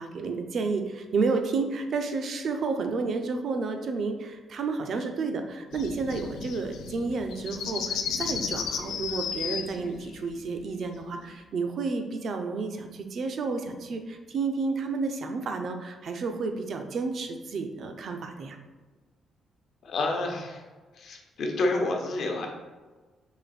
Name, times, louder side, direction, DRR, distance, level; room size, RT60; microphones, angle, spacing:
voice 1, 0.0-18.6, right 4 dB, 50° right, 6 dB, 0.5 m, -31 dB
sound 1, 5.7-11.2, left 7 dB, 85° left, 0.4 m, -34 dB
voice 2, 19.8-20.6 21.0-22.5, left 2 dB, 55° left, 2 dB, 0.8 m, -29 dB
4.9 x 2.5 x 4.0 m, 1.3 s
cardioid pair, 155°, 0 cm